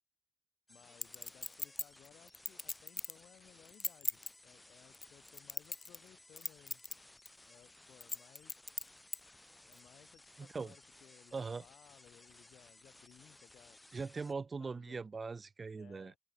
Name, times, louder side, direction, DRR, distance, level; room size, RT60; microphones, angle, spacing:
voice 1, 0.7-6.8 7.5-8.6 9.6-13.8 14.6-15.1 15.8-16.2, left 11 dB, 75° left, 6.1 m, -62 dB
sound 1, 0.7-14.3, left 1 dB, 15° left, 1.1 m, -60 dB
Chink clink, 1.0-3.2 3.7-4.3 4.9-6.1 6.4-6.9 7.3-7.4 8.0-9.2 9.7-9.8, left 3 dB, 35° left, 0.3 m, -39 dB
voice 2, 10.4-10.7 11.3-11.6 13.9-16.1, right 4 dB, 45° right, 1.5 m, -41 dB
open air
supercardioid pair, 45°, 0 cm